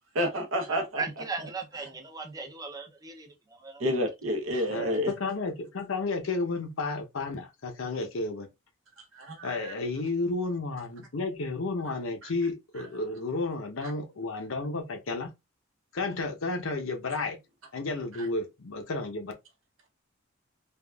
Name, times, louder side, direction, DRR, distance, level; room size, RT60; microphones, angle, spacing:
voice 1, 0.1-1.2 3.8-5.1 9.1-9.7 13.8-13.9, equal, 75° right, 0.8 m, -29 dB
voice 2, 0.7-3.3 3.6-3.8, right 4 dB, 20° right, 0.5 m, -37 dB
voice 3, 4.7-8.5 9.4-15.3 15.9-17.4 17.7-19.3, left 3 dB, 80° left, 0.7 m, -32 dB
3.5 x 2.3 x 2.3 m
head